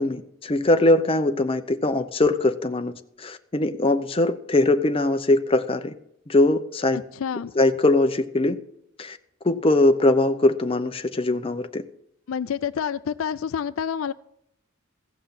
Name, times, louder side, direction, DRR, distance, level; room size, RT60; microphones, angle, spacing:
voice 1, 0.0-2.9 3.2-5.9 6.3-7.0 7.6-8.6 9.0-9.2 9.4-11.8, left 2 dB, 25° left, 8 dB, 0.7 m, -21 dB
voice 2, 7.1-7.5 12.3-14.1, left 7 dB, 75° left, 16 dB, 0.4 m, -28 dB
15.5 x 6.1 x 7.1 m, 0.74 s
head